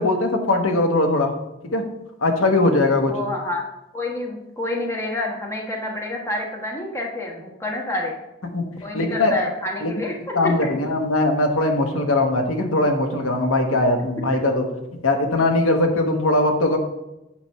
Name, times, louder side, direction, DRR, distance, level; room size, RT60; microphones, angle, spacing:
voice 1, 0.0-1.3 1.7-1.8 2.2-3.1 8.5-8.6 8.9-9.3 9.8-9.9 10.3-14.6 15.0-16.8, left 2 dB, 90° left, 3 dB, 1.1 m, -20 dB
voice 2, 3.1-3.6 3.9-8.1 8.8-10.8, left 1 dB, 15° left, -1 dB, 1.1 m, -28 dB
8.6 x 3.3 x 6.6 m, 0.93 s
head